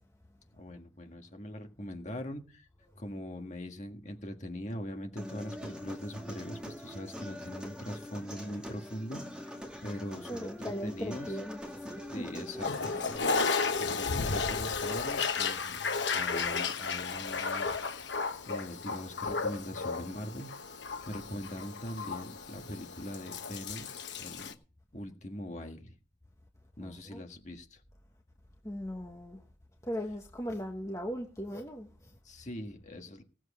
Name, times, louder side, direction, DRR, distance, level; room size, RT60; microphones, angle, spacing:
voice 1, 0.6-2.7 3.0-11.4 12.1-15.8 16.1-17.7 18.5-20.8 21.1-23.9 24.2-24.5 24.9-26.0 26.8-27.8 32.2-33.2, equal, 40° left, 1.7 m, -42 dB
Human voice, 5.2-13.2, left 1 dB, 5° right, 2.1 m, -44 dB
voice 2, 10.3-12.4 12.8-13.0 13.7-13.8 26.8-27.2 28.6-29.4 29.8-32.1, equal, 15° left, 1.2 m, -39 dB
Toilet flush, 12.6-24.5, left 4 dB, 65° left, 1.1 m, -33 dB
17.0 x 7.8 x 4.9 m
head